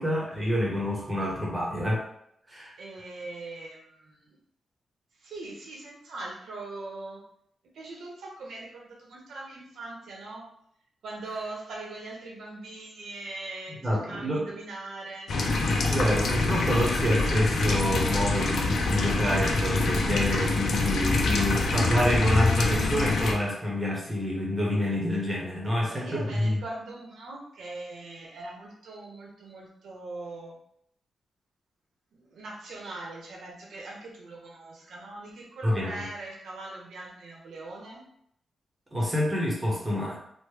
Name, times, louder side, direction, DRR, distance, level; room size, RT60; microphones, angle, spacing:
voice 1, 0.0-2.0 2.5-2.7 13.8-14.5 15.8-26.6 35.6-36.0 38.9-40.2, left 1 dB, 10° right, -3 dB, 0.8 m, -27 dB
voice 2, 2.8-4.4 5.2-7.2 7.7-10.4 11.0-15.3 25.8-30.6 32.1-38.0, right 2 dB, 85° right, -2 dB, 0.8 m, -41 dB
sound 1, 15.3-23.3, left 3 dB, 70° left, 0.4 m, -25 dB
3.1 x 2.1 x 3.1 m, 0.72 s
wide cardioid pair, 140°, 0 cm